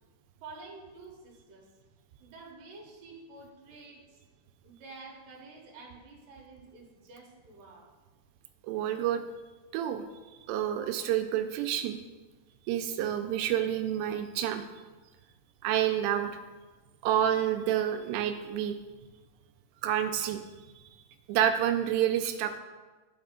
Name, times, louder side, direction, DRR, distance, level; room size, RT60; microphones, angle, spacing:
voice 1, 0.4-1.7 2.2-4.2 4.6-7.9, right 3 dB, 65° right, -1 dB, 2.6 m, -49 dB
voice 2, 8.6-9.2 9.7-10.0 10.5-12.0 12.7-14.7 15.6-16.3 17.0-18.7 19.8-20.4 20.8-20.9 21.3-22.6, right 10 dB, 90° right, 6 dB, 2.7 m, -28 dB
12.0 x 4.2 x 3.7 m, 1.3 s
omnidirectional pair, 4.9 m